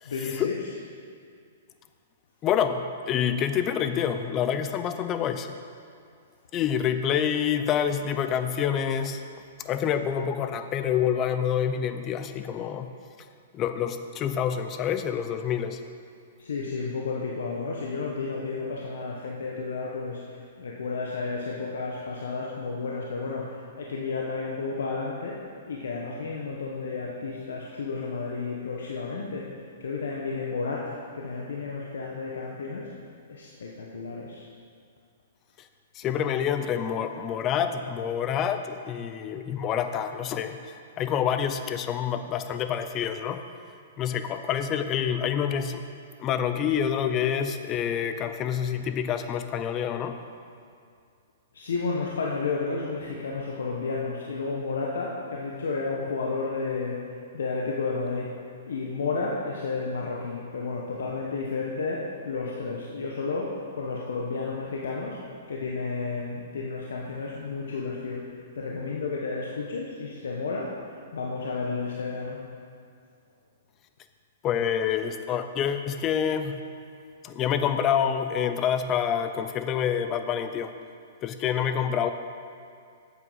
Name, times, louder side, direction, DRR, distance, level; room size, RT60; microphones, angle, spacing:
voice 1, 0.0-0.6 16.4-29.5 29.8-32.9 33.3-34.5 51.5-57.0 57.3-58.3 58.7-65.2 65.5-72.4, left 4 dB, 85° left, -3 dB, 1.1 m, -32 dB
voice 2, 2.4-5.5 6.5-9.2 9.6-12.9 13.5-15.8 35.9-43.4 44.0-45.8 46.2-50.2 74.4-76.6 77.2-80.7 81.2-82.1, left 8 dB, 25° left, 9 dB, 0.6 m, -27 dB
8.1 x 7.6 x 5.6 m, 2.3 s
hypercardioid pair, 145°, 0 cm